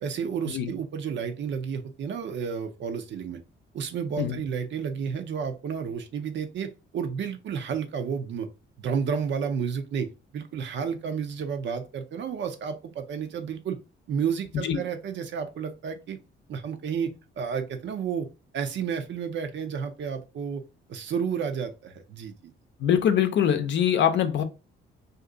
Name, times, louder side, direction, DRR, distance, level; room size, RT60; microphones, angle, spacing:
voice 1, 0.0-3.4 3.7-8.5 8.8-10.1 10.3-13.8 14.1-16.2 16.5-17.1 17.4-18.3 18.5-20.6 20.9-22.5, right 6 dB, 65° right, 0.7 m, -31 dB
voice 2, 22.8-24.4, left 9 dB, 65° left, 0.6 m, -23 dB
2.6 x 2.5 x 3.7 m
cardioid pair, 90°, 20 cm